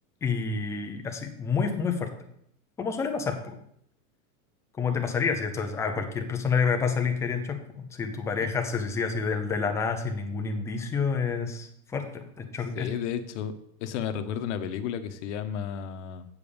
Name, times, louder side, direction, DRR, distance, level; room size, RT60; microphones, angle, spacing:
voice 1, 0.2-2.1 2.8-3.6 4.8-12.9, left 5 dB, 5° left, 4 dB, 0.4 m, -29 dB
voice 2, 12.7-13.5 13.8-16.3, left 8 dB, 50° left, 9 dB, 1.0 m, -32 dB
8.1 x 5.2 x 7.0 m, 0.72 s
supercardioid pair, 150°, 45 cm